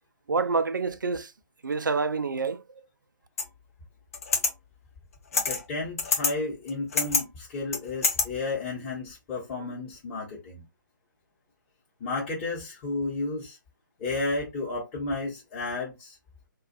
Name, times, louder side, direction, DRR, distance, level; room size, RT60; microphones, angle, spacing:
voice 1, 0.3-1.3 1.6-2.6, right 4 dB, 70° right, 0.4 m, -27 dB
sound 1, 3.4-3.5 4.1-4.5 5.3-5.6 6.0-6.3 6.7-7.2 7.7-8.2, left 4 dB, 45° left, 0.6 m, -25 dB
voice 2, 5.3-10.6 12.0-13.6 14.0-16.2, left 3 dB, 20° left, 1.0 m, -32 dB
2.4 x 2.4 x 2.6 m
figure-of-eight pair, 140°, 11 cm